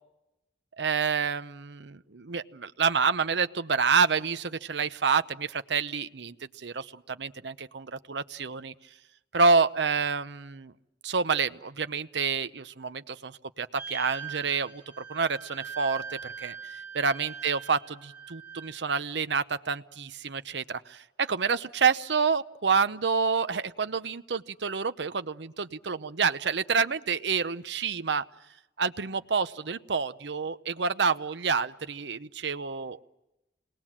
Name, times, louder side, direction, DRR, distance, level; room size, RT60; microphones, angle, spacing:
voice 1, 0.8-8.7 9.3-10.7 11.0-14.8 15.1-28.2 28.8-33.0, right 5 dB, 70° right, 11 dB, 0.8 m, -28 dB
sound 1, 13.8-18.8, right 6 dB, 10° right, 6.2 m, -42 dB
28.0 x 19.5 x 7.5 m, 0.92 s
head